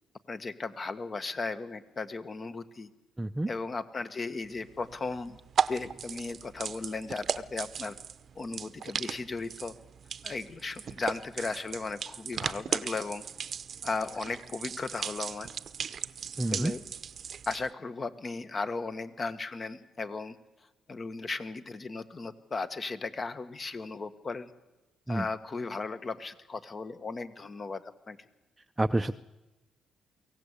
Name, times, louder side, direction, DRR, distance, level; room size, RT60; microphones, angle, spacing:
voice 1, 0.3-2.9 3.5-5.4 5.7-8.0 8.3-9.7 10.2-13.2 13.8-15.5 16.5-16.8 17.5-20.4 20.9-24.5 25.1-28.2, left 3 dB, 35° left, 11 dB, 1.6 m, -36 dB
voice 2, 3.2-3.5 16.4-16.7 25.1-25.3 28.8-29.1, right 1 dB, 15° right, 8 dB, 0.7 m, -28 dB
sound 1, 4.5-17.7, right 7 dB, 50° right, 0.8 m, -37 dB
23.5 x 17.5 x 8.3 m, 1.1 s
cardioid pair, 90°, 0 cm